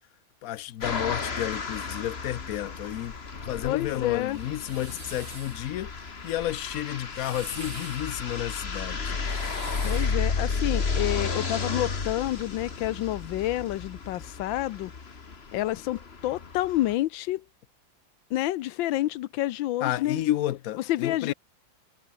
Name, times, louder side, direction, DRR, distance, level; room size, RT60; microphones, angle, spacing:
voice 1, 0.4-3.1 3.4-5.9 6.2-9.2 19.8-21.3, left 13 dB, 70° left, 0.8 m, -31 dB
sound 1, 0.8-16.9, left 4 dB, 35° left, 1.9 m, -33 dB
voice 2, 3.6-4.4 9.8-14.9 15.5-17.4 18.3-20.2 20.9-21.3, left 15 dB, 85° left, 1.4 m, -29 dB
sound 2, 4.3-5.6 7.0-8.0 9.1-10.2, right 3 dB, 80° right, 6.9 m, -44 dB
omnidirectional pair, 2.1 m